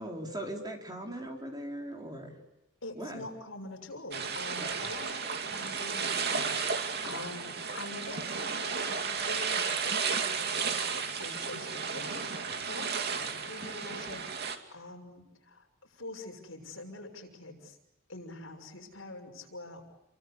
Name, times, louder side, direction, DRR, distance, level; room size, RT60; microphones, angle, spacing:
voice 1, 0.0-2.4 2.9-3.3, right 1 dB, 20° right, 2 dB, 4.5 m, -39 dB
voice 2, 2.8-17.8 18.1-20.1, left 2 dB, 70° left, 3 dB, 6.3 m, -45 dB
sound 1, 4.1-14.6, right 5 dB, 50° right, 2.6 m, -33 dB
29.0 x 24.0 x 8.3 m, 0.89 s
head